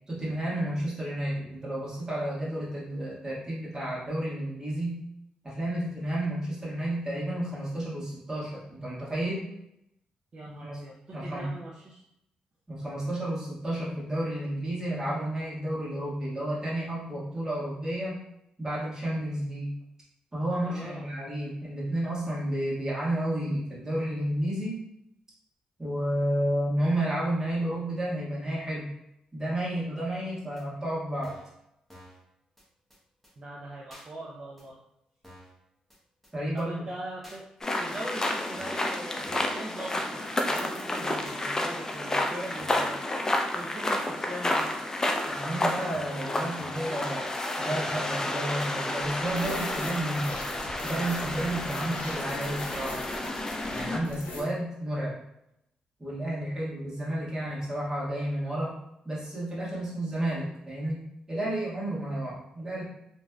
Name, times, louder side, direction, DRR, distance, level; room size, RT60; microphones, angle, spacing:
voice 1, 0.1-5.0 5.4-9.5 10.6-10.8 11.1-11.5 12.7-18.2 18.6-19.7 20.3-24.8 25.8-28.8 29.3-31.4 36.3-36.8 45.3-47.2 47.6-50.4 50.8-53.0 53.6-55.2 56.0-58.7 59.0-61.0 61.3-62.8, right 1 dB, 25° right, -7 dB, 1.4 m, -31 dB
voice 2, 10.3-12.0 20.6-21.1 33.4-34.8 36.5-37.4 37.8-43.3 43.5-44.7, right 1 dB, 45° right, -3 dB, 0.5 m, -41 dB
sound 1, 30.6-30.7 31.2-31.6 31.9-32.2 32.6-32.7 32.9-33.0 33.2-33.3 33.9-34.1 34.6-34.7 35.2-35.6 35.9-36.0 36.2-36.3 36.6-36.7 37.2-37.4 37.9-38.0 38.6-38.9 39.2-39.6 39.9-40.0 40.2-40.3 40.6-40.7 41.2-41.4 41.9-42.0 42.6-42.9 43.2-43.3 43.6-43.7 43.9-44.0 44.6-44.7 45.2-45.3 45.9-46.2 46.6-46.9 47.3-47.4 47.6-47.7 47.9-48.0 48.6-48.8 49.3-49.4, equal, 5° left, 0.9 m, -51 dB
sound 2, 37.6-54.0, left 1 dB, 25° left, 0.4 m, -31 dB
sound 3, 49.0-54.4, left 2 dB, 70° left, 0.7 m, -41 dB
3.0 x 2.6 x 2.3 m, 0.81 s
cardioid pair, 75°, 3 cm